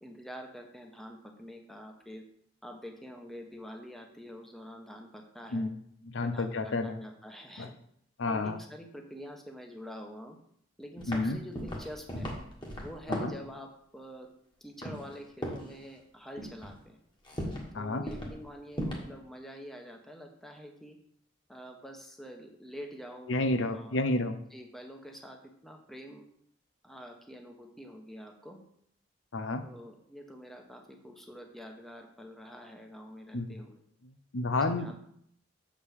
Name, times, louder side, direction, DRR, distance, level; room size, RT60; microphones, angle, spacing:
voice 1, 0.0-2.2 2.6-5.7 6.2-7.7 8.3-10.4 10.8-12.3 12.8-14.3 14.6-17.0 17.7-21.0 21.5-24.0 24.5-26.2 26.8-28.6 29.6-33.8 34.6-35.0, equal, ahead, 2 dB, 1.0 m, -46 dB
voice 2, 6.0-7.0 7.6-7.7 8.2-8.6 11.1-11.4 13.1-13.3 17.7-18.0 23.3-24.4 29.3-29.7 33.3-33.6 34.3-35.0, left 2 dB, 75° left, 9 dB, 0.7 m, -30 dB
sound 1, 11.0-11.3 11.5-13.4 14.8-15.2 15.4-15.7 16.4-16.7 17.2-17.7 18.1-18.4 18.7-19.1, equal, 25° left, 1.7 m, -36 dB
7.1 x 5.1 x 6.5 m, 0.69 s
head